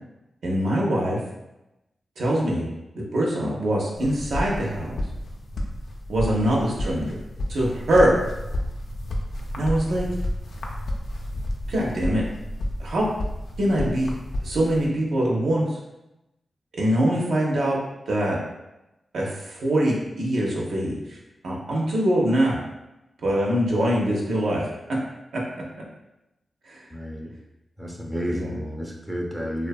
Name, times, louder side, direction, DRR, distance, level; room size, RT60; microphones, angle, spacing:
voice 1, 0.4-1.2 2.2-2.6 2.9-4.9 6.1-7.2 7.5-8.1 9.6-10.1 11.7-12.2 12.8-13.1 13.6-14.2 14.4-15.8 16.7-17.8 18.1-18.4 19.1-21.2 21.4-22.6 23.2-24.7 25.3-25.4 26.7-26.8 28.3-28.5, right 1 dB, 85° right, -3 dB, 0.5 m, -23 dB
sound 1, 4.0-14.9, left 1 dB, 80° left, 0.3 m, -31 dB
voice 2, 26.9-27.3 27.8-29.7, equal, 5° right, -1 dB, 0.5 m, -31 dB
2.6 x 2.3 x 2.2 m, 0.94 s
cardioid pair, 50°, 0 cm